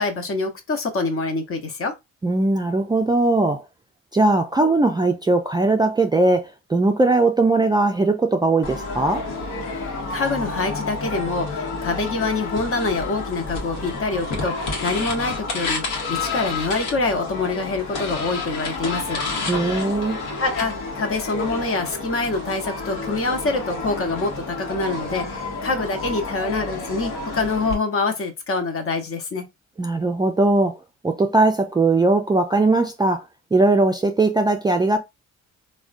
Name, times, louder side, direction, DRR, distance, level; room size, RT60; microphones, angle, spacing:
voice 1, 0.0-1.9 9.7-19.2 20.4-29.4, left 3 dB, 45° left, 0.8 m, -25 dB
voice 2, 2.2-3.6 4.1-9.3 19.5-20.2 29.8-30.8 31.0-33.2 33.5-35.0, right 2 dB, 15° right, 0.3 m, -19 dB
sound 1, 8.6-27.7, left 3 dB, 90° left, 1.0 m, -30 dB
3.4 x 2.2 x 2.4 m
cardioid pair, 90°, 30 cm